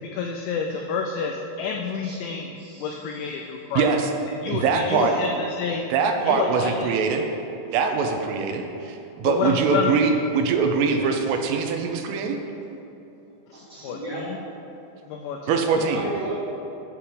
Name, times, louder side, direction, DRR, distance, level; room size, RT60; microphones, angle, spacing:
voice 1, 0.0-2.5 2.8-3.9 4.4-5.3 5.6-5.9 6.3-6.9 9.2-9.9 13.8-14.2 15.1-15.9, left 6 dB, 85° left, 2 dB, 2.6 m, -28 dB
voice 2, 2.6-3.3 4.5-4.6 5.1-5.2 13.5-14.2 15.6-16.3, right 2 dB, 40° left, -11 dB, 1.2 m, -36 dB
voice 3, 3.7-4.1 4.5-5.1 5.9-7.3 7.7-12.4 15.5-16.0, right 5 dB, 80° right, 5 dB, 3.1 m, -23 dB
10.5 x 4.3 x 7.3 m, 3.0 s
omnidirectional pair, 5.8 m